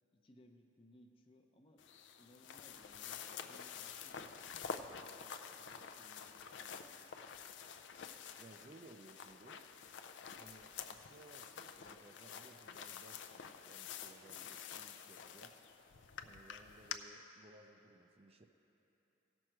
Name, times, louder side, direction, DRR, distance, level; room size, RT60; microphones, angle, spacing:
voice 1, 0.1-1.9 2.2-7.4, left 1 dB, 30° left, 4 dB, 0.6 m, -65 dB
sound 1, 1.8-17.0, left 7 dB, 80° left, 0.4 m, -49 dB
voice 2, 8.4-9.6 10.4-15.6 16.2-18.5, right 2 dB, 30° right, 5 dB, 0.4 m, -60 dB
16.0 x 6.1 x 4.5 m, 3.0 s
head